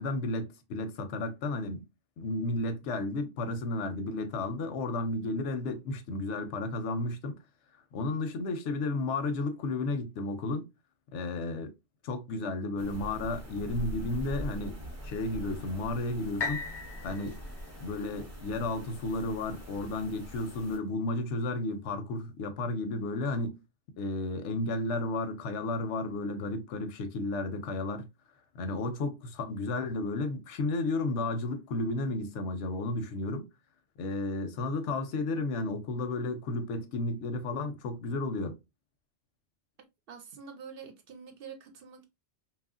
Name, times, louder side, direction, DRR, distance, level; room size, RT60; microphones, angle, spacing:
voice 1, 0.0-1.9 2.2-7.4 7.9-10.7 11.1-11.7 12.0-14.8 15.0-16.6 17.0-17.4 17.8-23.6 24.0-28.1 28.6-33.5 34.0-38.6, left 2 dB, 90° left, 0.9 m, -33 dB
sound 1, 12.8-20.8, equal, 20° right, 0.5 m, -43 dB
sound 2, 16.4-20.3 20.9-21.0, left 5 dB, 45° left, 0.3 m, -40 dB
voice 2, 40.1-42.1, right 6 dB, 60° right, 0.7 m, -46 dB
2.9 x 2.4 x 2.3 m
omnidirectional pair, 1.2 m